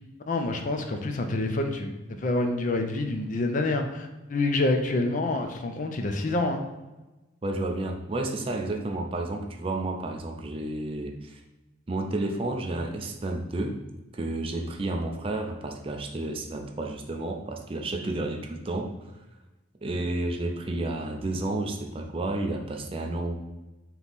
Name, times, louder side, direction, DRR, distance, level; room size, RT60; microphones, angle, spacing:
voice 1, 0.3-6.6, left 2 dB, 40° left, 5 dB, 0.4 m, -27 dB
voice 2, 7.4-11.4 11.9-13.9 14.1-19.0 19.8-23.3, right 2 dB, 30° right, 3 dB, 0.4 m, -31 dB
3.5 x 3.0 x 3.9 m, 1.1 s
head